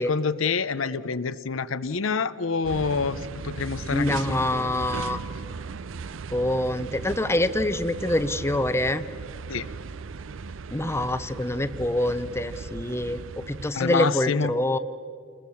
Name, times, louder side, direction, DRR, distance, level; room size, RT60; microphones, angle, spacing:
voice 1, 0.0-3.2 3.4-4.2 4.5-5.2 9.5-9.7 13.7-14.5, left 5 dB, 70° left, 14 dB, 0.7 m, -27 dB
sound 1, 2.6-13.7, right 5 dB, 70° right, 0.5 m, -37 dB
voice 2, 3.9-5.2 6.3-9.0 10.7-14.8, left 1 dB, 15° left, 12 dB, 0.7 m, -25 dB
29.0 x 21.0 x 7.1 m, 2.2 s
head